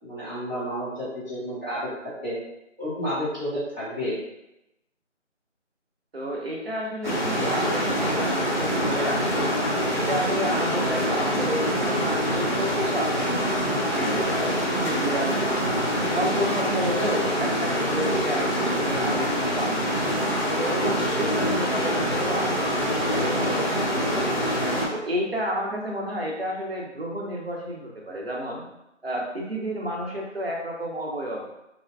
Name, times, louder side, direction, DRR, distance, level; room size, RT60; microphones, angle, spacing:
voice 1, 0.0-2.4 2.8-4.2, equal, 20° right, -14 dB, 1.0 m, -31 dB
voice 2, 6.1-9.5 10.0-13.3 13.9-19.7 20.5-24.4 24.9-28.6 29.0-31.4, equal, 55° right, -2 dB, 0.7 m, -31 dB
sound 1, 7.0-24.9, equal, 40° left, 0.8 m, -25 dB
3.3 x 2.1 x 2.5 m, 0.87 s
figure-of-eight pair, 170°, 37 cm